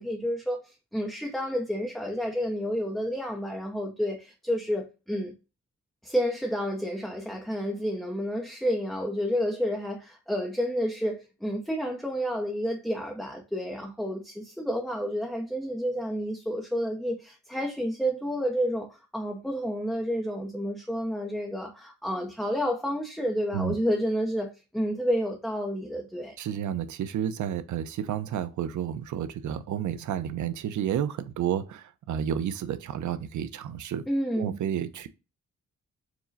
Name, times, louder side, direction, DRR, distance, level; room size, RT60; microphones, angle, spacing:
voice 1, 0.0-5.3 6.0-26.4 34.1-34.6, equal, ahead, 0.5 m, -30 dB
voice 2, 26.4-34.1 34.4-35.1, right 9 dB, 75° right, 0.5 m, -31 dB
4.8 x 2.0 x 3.9 m
wide cardioid pair, 125°, 29 cm